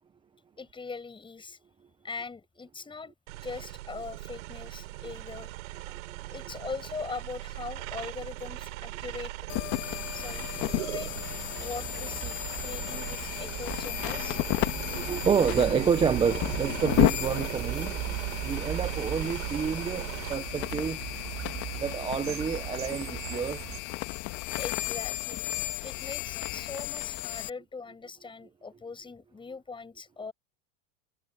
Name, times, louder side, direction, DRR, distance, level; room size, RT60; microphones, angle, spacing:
voice 1, 0.6-1.6 2.0-3.1 3.4-5.5 6.3-9.3 10.1-11.1 11.6-14.4 20.3-20.5 24.6-25.5 25.8-30.3, left 4 dB, 10° left, 7.9 m, -41 dB
sound 1, 3.3-20.3, right 18 dB, 75° right, 5.0 m, -39 dB
sound 2, 9.5-27.5, left 20 dB, 45° left, 1.9 m, -33 dB
sound 3, 11.5-23.8, right 17 dB, 45° right, 4.2 m, -39 dB
voice 2, 14.9-18.2 18.4-21.1 21.8-23.6, right 6 dB, 15° right, 0.6 m, -29 dB
supercardioid pair, 150°, 41 cm